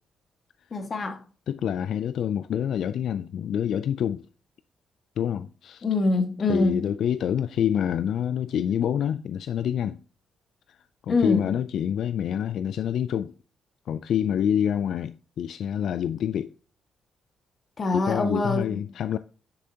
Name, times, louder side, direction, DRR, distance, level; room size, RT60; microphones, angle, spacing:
voice 1, 0.7-1.2 5.8-6.8 11.1-11.5 17.8-18.8, left 3 dB, 40° left, 1.7 m, -24 dB
voice 2, 1.5-4.3 5.2-5.8 6.4-10.0 11.0-13.3 13.9-16.5 17.9-19.2, left 9 dB, 75° left, 0.3 m, -27 dB
9.8 x 7.7 x 2.8 m
cardioid pair, 115°, 0 cm